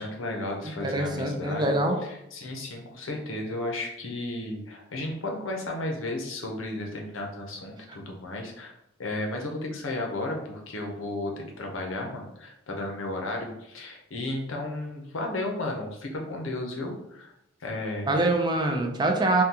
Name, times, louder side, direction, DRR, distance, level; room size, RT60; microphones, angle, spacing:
voice 1, 0.0-8.7 9.0-17.3 17.6-18.2, left 2 dB, 85° left, 1 dB, 0.7 m, -34 dB
voice 2, 0.8-2.0 18.1-19.4, right 2 dB, 20° right, 2 dB, 0.4 m, -24 dB
3.6 x 2.3 x 2.8 m, 0.82 s
head